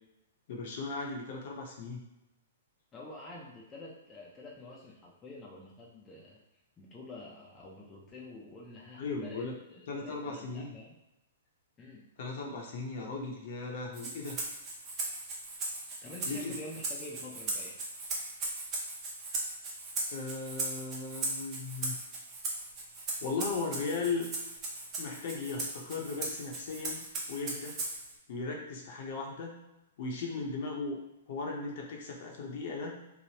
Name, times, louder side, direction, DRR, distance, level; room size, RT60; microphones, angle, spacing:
voice 1, 0.5-2.0 9.0-9.6 9.9-10.8 12.2-14.4 16.3-16.5 20.1-22.0 23.2-24.3 25.0-27.8 28.3-29.5 30.0-31.0 31.3-33.0, left 4 dB, 55° left, 0 dB, 0.7 m, -37 dB
voice 2, 2.9-6.4 6.8-10.9 11.8-12.1 16.0-17.8, left 2 dB, 20° left, -4 dB, 0.4 m, -48 dB
Rattle (instrument), 13.9-28.1, right 2 dB, 25° right, 0.7 m, -38 dB
3.1 x 2.0 x 2.8 m, 0.93 s
hypercardioid pair, 145°, 0 cm